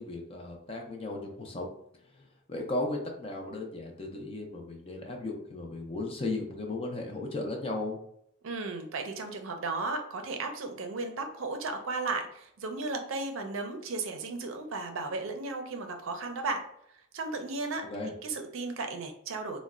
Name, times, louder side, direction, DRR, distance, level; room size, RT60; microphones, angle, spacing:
voice 1, 0.0-1.7 2.1-8.0 17.8-18.1, left 2 dB, 25° left, 2 dB, 0.4 m, -36 dB
voice 2, 8.4-16.6 16.9-19.6, right 3 dB, 70° right, 5 dB, 0.5 m, -35 dB
3.9 x 2.1 x 2.3 m, 0.71 s
head